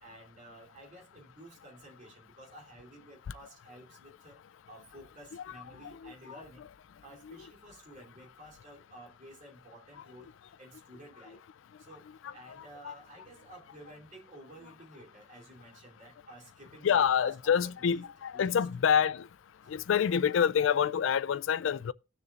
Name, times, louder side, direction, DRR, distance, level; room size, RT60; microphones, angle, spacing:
voice 1, 0.0-4.4 4.7-6.6 7.0-10.3 10.6-11.4 11.8-12.0 12.3-18.6 19.6-19.7, right 1 dB, 45° right, 3.0 m, -52 dB
voice 2, 5.3-6.4 7.2-7.5 10.2-10.3 11.3-11.4 12.2-13.0 16.8-19.3 19.7-21.9, left 8 dB, 80° left, 0.4 m, -28 dB
18.0 x 6.8 x 2.4 m
head